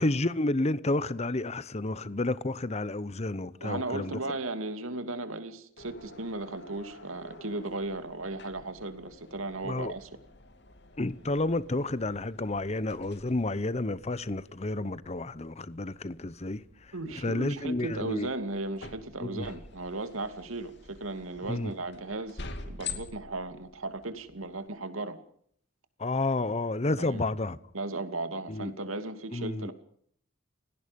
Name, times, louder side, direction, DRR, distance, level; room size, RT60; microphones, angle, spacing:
voice 1, 0.0-4.2 9.6-9.9 11.0-16.9 17.2-18.3 19.2-19.5 21.5-21.7 26.0-27.6 28.5-28.7 29.3-29.7, left 2 dB, 30° left, 0.9 m, -30 dB
voice 2, 3.6-10.1 16.9-25.2 27.0-27.2 27.7-29.7, right 2 dB, 90° right, 2.7 m, -36 dB
sound 1, 5.8-24.7, left 4 dB, 55° left, 2.6 m, -48 dB
29.5 x 18.0 x 5.4 m
head